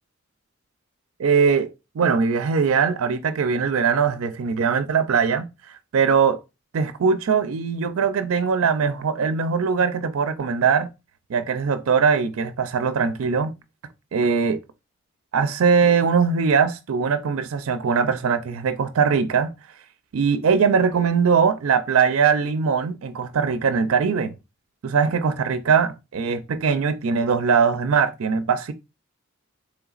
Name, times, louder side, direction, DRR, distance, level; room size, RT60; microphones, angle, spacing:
voice 1, 1.2-5.5 5.9-6.4 6.7-10.9 11.3-13.5 14.1-14.6 15.3-19.5 20.1-24.3 24.8-28.7, right 6 dB, 75° right, 0.4 m, -21 dB
3.9 x 3.2 x 2.4 m
head